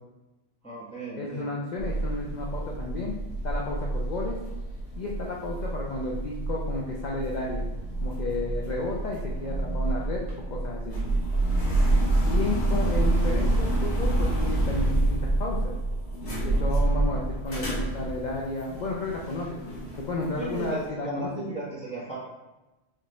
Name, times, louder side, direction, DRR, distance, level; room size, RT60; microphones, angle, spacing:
voice 1, 0.6-1.5 11.6-11.9 20.4-22.2, right 2 dB, 5° left, -6 dB, 0.9 m, -36 dB
voice 2, 1.2-3.2 3.4-4.4 5.0-7.7 8.0-11.0 12.2-15.7 16.4-21.3, left 2 dB, 50° left, -2 dB, 0.6 m, -32 dB
sound 1, 1.8-20.7, right 2 dB, 80° left, 1.6 m, -28 dB
4.2 x 3.9 x 3.1 m, 1.0 s
omnidirectional pair, 1.2 m